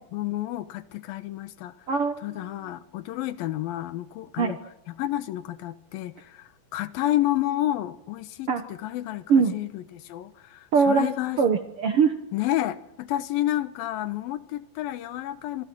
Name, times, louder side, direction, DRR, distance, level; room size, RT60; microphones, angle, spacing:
voice 1, 0.1-1.8 2.2-4.6 4.9-11.4 12.3-15.7, left 14 dB, 80° left, 2.8 m, -30 dB
voice 2, 1.9-2.2 4.4-4.5 8.5-8.6 9.3-9.5 10.7-11.1 11.4-12.3, right 5 dB, 65° right, 1.4 m, -21 dB
26.0 x 25.0 x 6.2 m
omnidirectional pair, 4.2 m